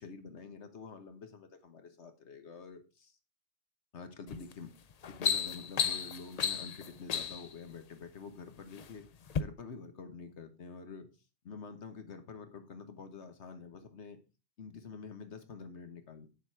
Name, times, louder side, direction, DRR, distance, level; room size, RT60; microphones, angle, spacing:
voice 1, 0.0-3.2 3.9-4.7 5.1-9.1 9.4-11.1 11.4-14.2 14.6-16.3, left 5 dB, 80° left, 8 dB, 1.4 m, -47 dB
sound 1, 4.3-4.5 4.9-7.5 8.3-8.9 9.3-9.4, left 7 dB, 50° left, 0.5 m, -33 dB
8.4 x 7.0 x 4.6 m, 0.32 s
omnidirectional pair, 1.2 m